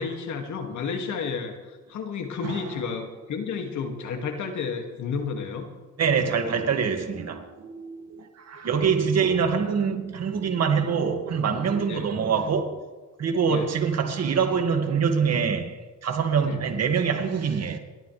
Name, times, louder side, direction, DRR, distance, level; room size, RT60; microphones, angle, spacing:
voice 1, 0.0-5.7 8.6-9.4 11.9-12.1 13.5-13.7 16.4-16.6, left 5 dB, 75° left, 2.3 m, -32 dB
voice 2, 6.0-12.8 13.2-15.7 16.0-17.8, right 6 dB, 55° right, 2.2 m, -25 dB
27.5 x 12.5 x 3.4 m
cardioid pair, 90°, 30 cm